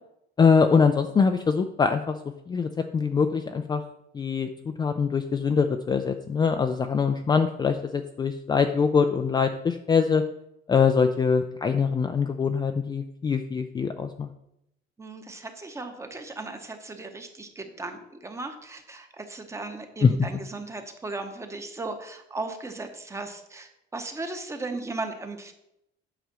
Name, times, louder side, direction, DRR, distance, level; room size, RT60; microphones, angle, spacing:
voice 1, 0.4-2.2 2.5-3.8 4.1-4.5 4.8-10.2 10.7-14.3 20.0-20.1, left 5 dB, 20° left, 6 dB, 0.4 m, -23 dB
voice 2, 15.0-25.5, right 2 dB, 15° right, 6 dB, 1.0 m, -37 dB
9.2 x 4.9 x 6.9 m, 0.81 s
cardioid pair, 160°, 21 cm